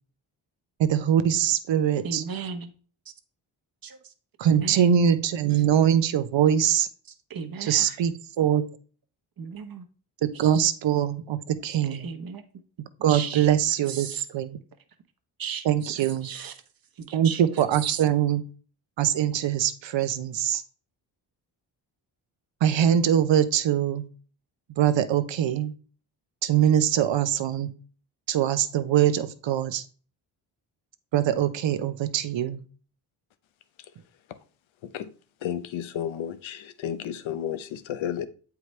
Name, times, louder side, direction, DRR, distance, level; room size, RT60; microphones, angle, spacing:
voice 1, 0.8-2.2 4.4-6.9 7.6-8.6 10.2-12.1 13.0-14.1 14.3-14.6 15.6-16.3 17.1-18.4 19.0-20.6 22.6-24.0 24.8-25.7 26.4-27.7 28.3-29.8 31.1-32.6, right 10 dB, 65° right, 0.8 m, -23 dB
voice 2, 2.0-2.7 3.8-4.0 4.5-4.8 7.3-8.0 9.4-9.8 11.9-12.4 13.1-13.5 13.9-14.2 15.4-15.6 16.2-16.5 17.0-17.4, right 6 dB, 45° right, 1.2 m, -35 dB
voice 3, 35.4-38.3, left 9 dB, 70° left, 0.8 m, -32 dB
8.0 x 4.7 x 3.2 m
supercardioid pair, 55°, 48 cm